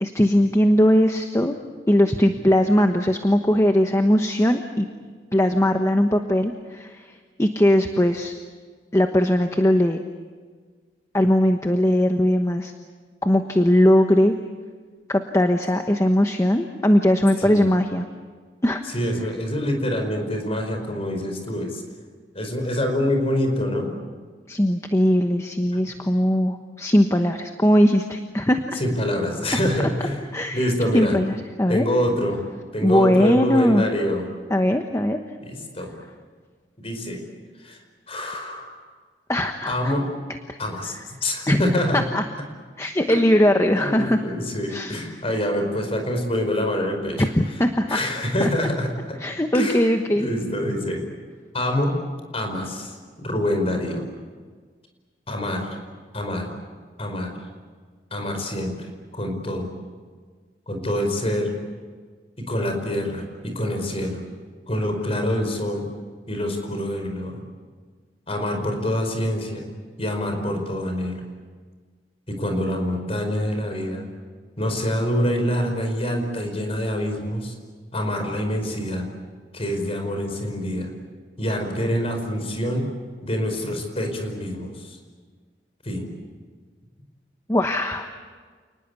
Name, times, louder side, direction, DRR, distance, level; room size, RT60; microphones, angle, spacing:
voice 1, 0.0-1.5 1.9-4.9 5.3-8.4 8.9-10.0 11.1-12.7 13.2-14.3 15.1-18.1 18.6-18.8 24.5-28.8 30.3-30.7 30.9-31.8 32.8-33.8 34.5-35.2 39.3-39.9 41.5-41.6 41.9-42.2 42.8-44.2 44.7-45.0 47.2-48.0 48.4-48.5 49.2-50.3 87.5-88.1, equal, 15° left, 5 dB, 1.1 m, -20 dB
voice 2, 17.4-17.7 18.9-21.8 22.3-23.9 25.8-25.9 28.7-30.2 30.5-31.2 31.7-32.4 32.7-34.2 35.4-36.0 36.8-37.2 37.6-37.8 38.1-38.8 39.7-40.0 40.6-41.0 41.2-42.0 43.1-43.2 43.7-47.3 47.9-49.2 49.5-49.8 50.2-51.0 51.5-51.9 52.3-54.0 55.3-55.8 56.1-56.5 57.0-57.3 58.1-58.9 59.1-59.7 60.7-61.5 62.4-64.2 64.7-65.9 66.3-67.4 68.3-69.7 70.0-71.2 72.3-74.1 74.6-77.5 77.9-79.1 79.5-80.9 81.4-82.9 83.2-85.0 85.8-86.1, left 1 dB, 35° left, 4 dB, 5.1 m, -26 dB
29.0 x 20.0 x 8.3 m, 1.5 s
head